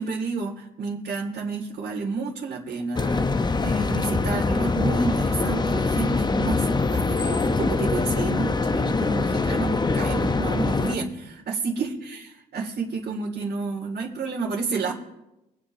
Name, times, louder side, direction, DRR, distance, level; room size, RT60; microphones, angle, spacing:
voice 1, 0.0-14.9, right 4 dB, 55° right, -4 dB, 2.3 m, -30 dB
sound 1, 2.9-11.0, left 3 dB, 20° left, 0.7 m, -23 dB
24.5 x 8.6 x 2.7 m, 0.93 s
cardioid pair, 90°, 20 cm